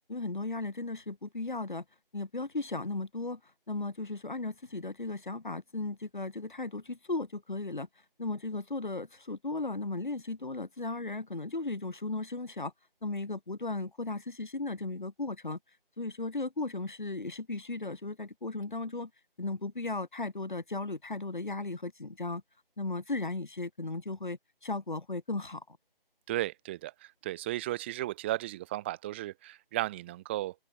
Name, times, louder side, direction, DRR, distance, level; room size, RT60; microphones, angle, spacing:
voice 1, 0.1-1.8 2.1-3.4 3.7-7.9 8.2-12.7 13.0-15.6 16.0-19.1 19.4-22.4 22.8-25.8, left 2 dB, 55° left, 7.3 m, -36 dB
voice 2, 26.3-30.6, right 15 dB, 10° right, 3.8 m, -35 dB
open air
figure-of-eight pair, 160°, 29 cm